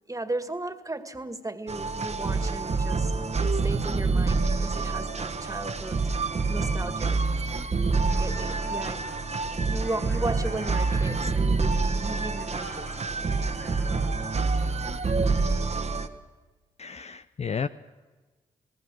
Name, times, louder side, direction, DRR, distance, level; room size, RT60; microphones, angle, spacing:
voice 1, 0.1-3.1 3.4-6.1 6.5-7.2 8.2-9.1 9.6-12.9, right 2 dB, 20° right, 9 dB, 2.1 m, -35 dB
sound 1, 1.7-16.1, right 3 dB, 40° right, 1.5 m, -27 dB
sound 2, 3.9-14.7, left 2 dB, 85° left, 6.8 m, -51 dB
voice 2, 16.8-17.7, left 6 dB, 40° left, 11 dB, 0.6 m, -32 dB
28.0 x 19.0 x 6.3 m, 1.3 s
supercardioid pair, 45°, 17 cm